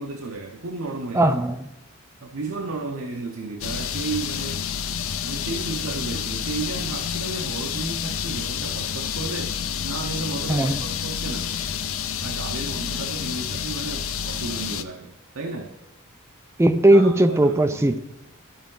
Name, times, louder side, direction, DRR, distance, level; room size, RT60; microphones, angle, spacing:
voice 1, 0.0-1.3 2.2-4.6 5.2-9.6 9.8-11.5 12.2-15.7 16.9-17.9, right 3 dB, 80° right, 3 dB, 0.7 m, -33 dB
voice 2, 1.1-1.6 10.5-10.8 16.6-18.0, right 1 dB, 15° right, 8 dB, 0.4 m, -18 dB
sound 1, 3.6-14.8, left 8 dB, 70° left, 0.5 m, -29 dB
13.0 x 4.7 x 3.8 m, 0.92 s
head